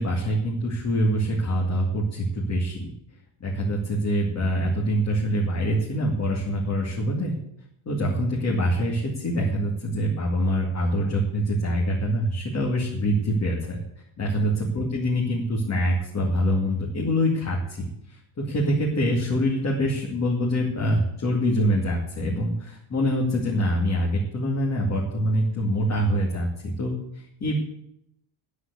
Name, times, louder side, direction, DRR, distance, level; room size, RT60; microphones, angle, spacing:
voice 1, 0.0-2.9 3.4-7.3 7.9-13.8 14.2-27.5, equal, 30° left, -2 dB, 2.3 m, -25 dB
9.7 x 8.3 x 8.3 m, 0.76 s
cardioid pair, 155°, 49 cm